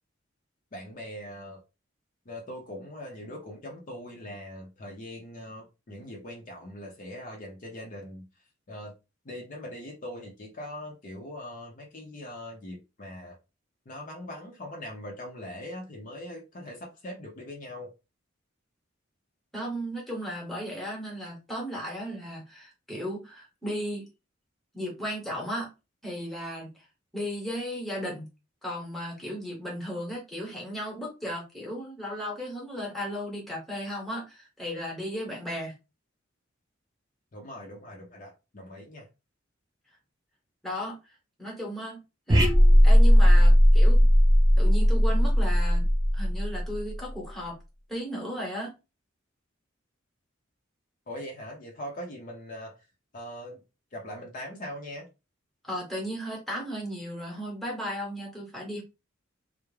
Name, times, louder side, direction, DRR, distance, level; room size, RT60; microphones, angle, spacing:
voice 1, 0.7-1.6 2.3-8.3 8.7-8.9 9.2-13.4 13.9-17.9 37.3-39.1 51.1-52.7 53.1-53.6 53.9-55.1, left 1 dB, 40° left, 0.6 m, -41 dB
voice 2, 19.5-24.1 24.7-25.7 26.0-26.7 27.1-28.3 28.6-35.7 40.6-41.0 41.4-42.0 42.3-42.5 42.8-44.0 44.6-45.9 46.1-47.6 47.9-48.7 55.6-58.8, equal, ahead, 0.9 m, -35 dB
sound 1, 42.3-46.9, equal, 20° right, 0.5 m, -18 dB
2.3 x 2.0 x 3.1 m
head